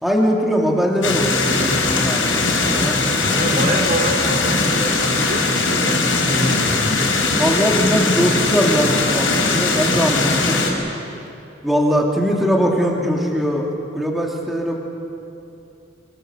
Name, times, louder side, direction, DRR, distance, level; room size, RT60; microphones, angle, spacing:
voice 1, 0.0-3.2 7.4-10.6 11.6-13.7 13.9-14.8, equal, ahead, -1 dB, 2.7 m, -21 dB
sound 1, 1.0-10.7, left 3 dB, 90° left, 5.3 m, -19 dB
voice 2, 3.2-7.1, right 1 dB, 45° right, 2 dB, 3.6 m, -25 dB
26.0 x 24.5 x 6.9 m, 2.7 s
head